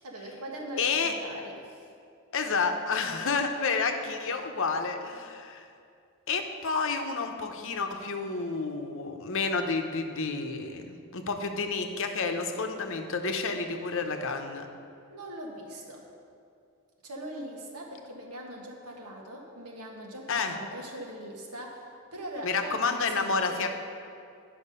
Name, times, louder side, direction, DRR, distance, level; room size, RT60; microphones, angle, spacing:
voice 1, 0.0-1.8 15.1-16.1 17.0-23.7, right 1 dB, 85° right, 0 dB, 1.5 m, -41 dB
voice 2, 0.8-1.1 2.3-5.6 6.3-14.7 20.3-20.6 22.4-23.7, left 4 dB, 60° left, 5 dB, 0.8 m, -30 dB
10.0 x 5.8 x 5.5 m, 2.4 s
head